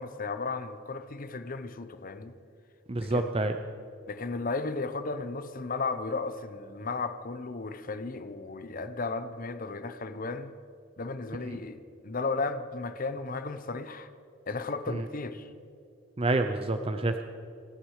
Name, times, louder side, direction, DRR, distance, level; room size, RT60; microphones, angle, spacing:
voice 1, 0.0-2.3 3.0-3.3 4.1-10.5 11.0-11.8 12.0-14.1 14.5-15.5, left 3 dB, 45° left, 11 dB, 0.9 m, -34 dB
voice 2, 2.9-3.5 14.9-15.0 16.2-17.2, right 2 dB, 30° right, 7 dB, 0.6 m, -28 dB
27.0 x 9.5 x 4.9 m, 2.5 s
head